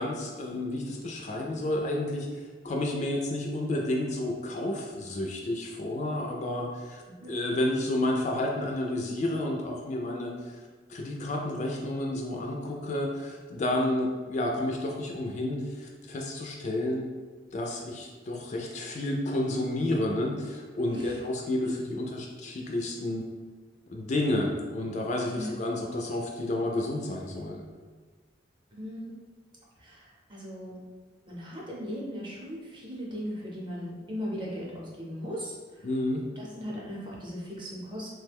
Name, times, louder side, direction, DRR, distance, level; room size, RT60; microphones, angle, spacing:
voice 1, 0.0-7.0 7.3-10.5 10.9-17.0 17.5-23.3 23.9-27.6 35.8-36.2, left 1 dB, 40° left, 0 dB, 0.3 m, -30 dB
voice 2, 7.1-7.4 20.9-21.2 21.6-21.7 25.4-25.5 28.7-29.1 29.8-30.8 31.3-35.9 36.3-38.1, equal, 25° right, -4 dB, 0.7 m, -38 dB
3.0 x 2.2 x 3.4 m, 1.4 s
head